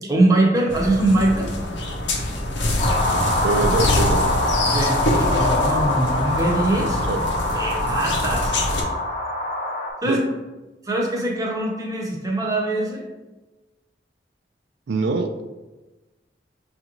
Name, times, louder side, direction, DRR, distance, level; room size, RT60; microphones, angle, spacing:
voice 1, 0.0-1.5 4.7-7.0 7.5-8.6 10.0-10.3 10.8-13.1, right 1 dB, 20° right, -1 dB, 0.7 m, -22 dB
sound 1, 0.7-8.8, left 1 dB, 85° left, 0.7 m, -25 dB
sound 2, 2.8-9.9, left 2 dB, 35° left, 0.6 m, -24 dB
voice 2, 3.4-4.2 7.1-7.2 10.1-10.2 14.9-15.4, right 3 dB, 75° right, 5 dB, 0.4 m, -23 dB
6.2 x 2.5 x 2.9 m, 1.1 s
head